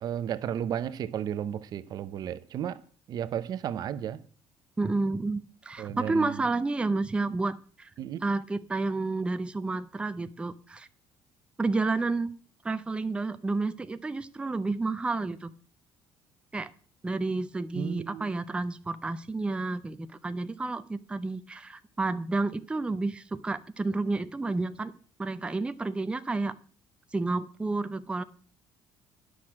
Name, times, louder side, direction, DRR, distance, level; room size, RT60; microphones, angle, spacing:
voice 1, 0.0-2.8 3.1-4.2 5.8-6.4 8.0-8.2 17.7-18.3, right 9 dB, 50° right, 0.8 m, -33 dB
voice 2, 4.8-7.9 8.2-10.9 11.6-12.3 12.6-15.5 16.5-16.7 17.0-24.9 25.2-26.5 27.1-28.2, right 3 dB, 10° right, 0.5 m, -30 dB
10.0 x 6.2 x 7.3 m
cardioid pair, 130°, 8 cm